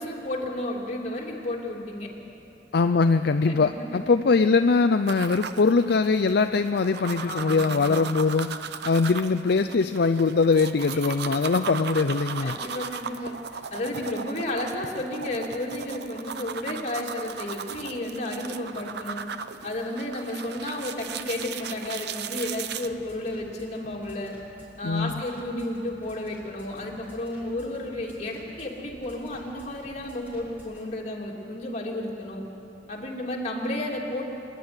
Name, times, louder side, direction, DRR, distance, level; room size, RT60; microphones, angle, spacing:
voice 1, 0.0-2.1 3.5-4.1 7.2-7.9 10.9-11.2 12.4-13.3 13.7-19.2 19.6-24.4 24.8-32.4 32.9-34.2, left 1 dB, 40° left, -2 dB, 3.0 m, -32 dB
voice 2, 2.7-12.6 24.8-25.1, left 4 dB, 60° left, 8 dB, 0.5 m, -22 dB
sound 1, 5.1-22.9, right 6 dB, 65° right, 0.7 m, -37 dB
Bass drum, 22.6-30.8, equal, 10° right, 5.9 m, -53 dB
25.5 x 11.0 x 9.7 m, 2.8 s
head